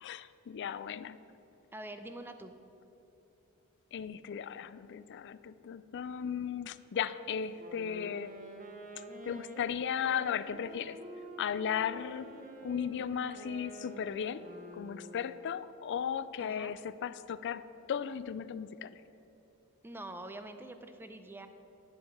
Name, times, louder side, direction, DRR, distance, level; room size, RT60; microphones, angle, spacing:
voice 1, 0.0-1.2 3.9-8.3 9.2-11.0 11.4-12.3 12.6-14.5 14.7-17.6 17.9-19.0, left 8 dB, 55° left, 15 dB, 0.4 m, -36 dB
voice 2, 1.7-2.5 16.4-16.7 19.8-21.5, right 1 dB, 10° right, 8 dB, 0.5 m, -45 dB
Wind instrument woodwind instrument, 7.5-15.4, right 1 dB, 35° right, 0.9 m, -48 dB
10.0 x 5.3 x 7.1 m, 3.0 s
head